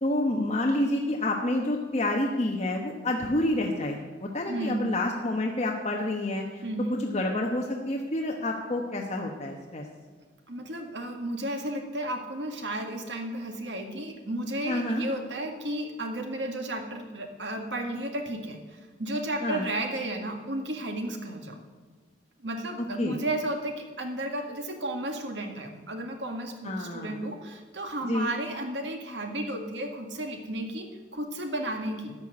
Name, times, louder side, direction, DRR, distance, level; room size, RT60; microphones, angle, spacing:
voice 1, 0.0-6.6 6.9-9.8 14.7-15.0 19.4-19.6 23.0-23.2 26.6-27.2 28.1-28.3, left 1 dB, 35° left, 0 dB, 1.1 m, -28 dB
voice 2, 4.5-5.0 6.6-7.0 10.5-21.6 22.4-32.1, right 1 dB, 75° right, 4 dB, 1.9 m, -33 dB
13.5 x 5.9 x 9.7 m, 1.5 s
head